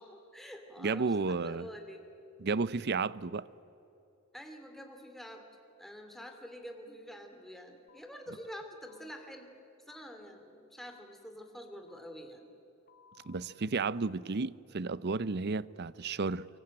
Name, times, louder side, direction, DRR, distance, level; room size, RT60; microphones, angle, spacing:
voice 1, 0.0-2.0 4.3-5.5 5.8-9.5 9.9-12.5, equal, ahead, 2.6 m, -47 dB
voice 2, 0.8-1.7 2.4-3.5 13.3-16.5, right 4 dB, 50° right, 0.6 m, -32 dB
sound 1, 7.9-8.0 8.9-9.0 9.9-10.0 10.9-11.0 11.9-12.0 12.9-13.4, left 7 dB, 40° left, 2.4 m, -61 dB
25.0 x 23.0 x 8.8 m
head